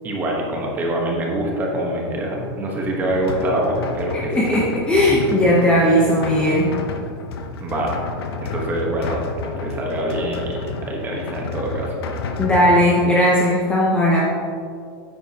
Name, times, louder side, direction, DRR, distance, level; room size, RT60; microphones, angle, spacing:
voice 1, 0.0-4.5 7.6-8.0 8.4-9.2 9.6-11.9, right 1 dB, 15° right, -1 dB, 1.1 m, -24 dB
sound 1, 3.0-12.9, left 4 dB, 80° left, 0.9 m, -31 dB
voice 2, 4.3-6.7 12.4-14.2, equal, 10° left, -5 dB, 0.8 m, -17 dB
9.5 x 9.2 x 2.9 m, 2.3 s
supercardioid pair, 175°, 13 cm